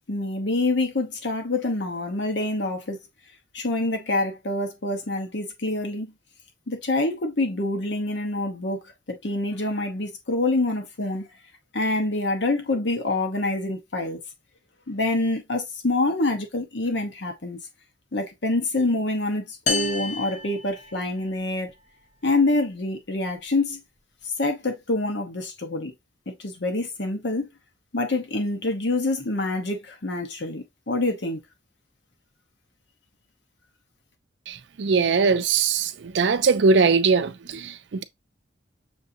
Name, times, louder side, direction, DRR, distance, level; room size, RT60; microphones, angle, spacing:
voice 1, 0.1-3.0 3.5-6.1 6.7-8.8 9.1-11.3 11.7-14.2 14.9-17.6 18.1-21.7 22.2-23.8 24.4-25.9 26.4-27.5 27.9-31.4, left 2 dB, 70° left, 0.9 m, -26 dB
sound 1, 19.7-21.4, left 3 dB, 40° left, 0.7 m, -30 dB
voice 2, 34.5-38.0, right 4 dB, 75° right, 0.4 m, -21 dB
6.3 x 2.6 x 2.7 m
head